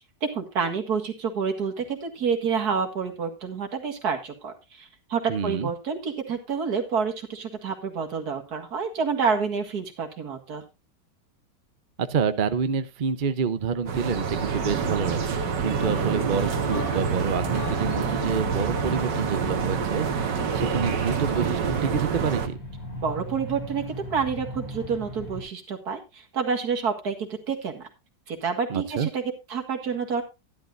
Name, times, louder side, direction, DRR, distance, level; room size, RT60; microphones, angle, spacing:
voice 1, 0.2-10.6 23.0-27.9 28.3-29.2 29.5-30.2, right 5 dB, 60° right, 4 dB, 2.4 m, -28 dB
voice 2, 5.3-5.7 12.0-22.6 28.7-29.1, right 6 dB, 45° right, 11 dB, 0.6 m, -28 dB
sound 1, 13.6-25.4, equal, 75° left, 6.9 m, -38 dB
sound 2, 13.9-22.5, right 6 dB, 85° right, 2.1 m, -27 dB
sound 3, 15.7-19.7, left 5 dB, 55° left, 2.8 m, -41 dB
13.0 x 11.0 x 2.6 m, 0.24 s
omnidirectional pair, 1.9 m